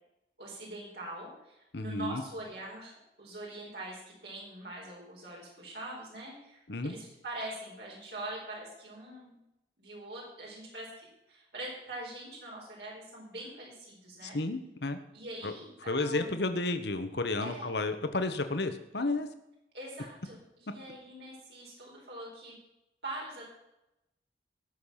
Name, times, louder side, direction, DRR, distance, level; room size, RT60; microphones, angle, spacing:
voice 1, 0.4-2.9 3.2-9.4 9.8-14.4 15.1-16.4 17.4-17.7 19.7-22.6 23.0-23.4, right 1 dB, 70° right, -3 dB, 4.4 m, -43 dB
voice 2, 1.7-2.2 6.7-6.9 14.2-15.0 15.4-15.5 15.9-19.3, left 2 dB, 75° left, 8 dB, 1.2 m, -32 dB
18.5 x 6.7 x 5.7 m, 0.90 s
head